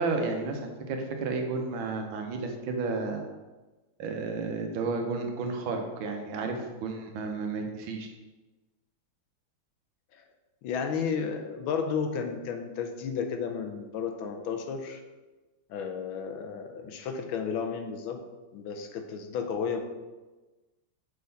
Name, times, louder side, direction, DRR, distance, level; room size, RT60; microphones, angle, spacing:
voice 1, 0.0-3.2 4.0-8.1, right 3 dB, 80° right, 3 dB, 1.6 m, -32 dB
voice 2, 10.6-15.0 15.7-18.2 18.5-19.8, left 6 dB, 85° left, 5 dB, 1.5 m, -33 dB
6.5 x 3.8 x 4.0 m, 1.2 s
omnidirectional pair, 2.2 m